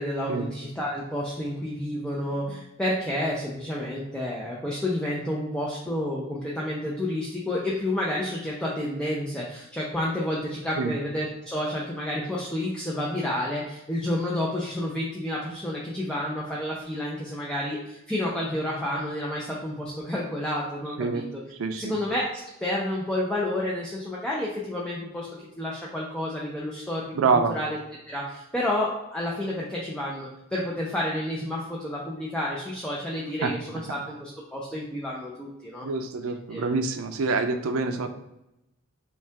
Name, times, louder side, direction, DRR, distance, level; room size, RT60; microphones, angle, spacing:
voice 1, 0.0-21.2 21.7-25.3 25.6-27.8 28.1-35.9 36.3-36.7 38.0-38.1, left 1 dB, 5° left, -5 dB, 0.6 m, -30 dB
voice 2, 21.6-22.0 27.2-27.5 33.4-33.5 35.8-38.1, right 4 dB, 80° right, 7 dB, 0.4 m, -26 dB
5.4 x 2.4 x 3.4 m, 0.89 s
head